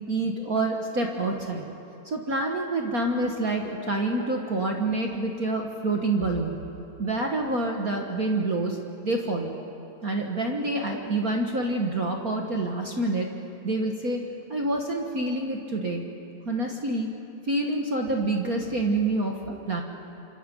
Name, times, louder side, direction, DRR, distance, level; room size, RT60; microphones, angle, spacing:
voice 1, 0.1-1.7 2.0-6.6 7.0-8.8 9.0-9.5 10.0-13.3 13.6-14.2 14.5-16.0 16.4-17.1 17.5-19.8, right 2 dB, 45° right, 1 dB, 1.3 m, -27 dB
27.0 x 26.0 x 5.4 m, 2.8 s
omnidirectional pair, 3.3 m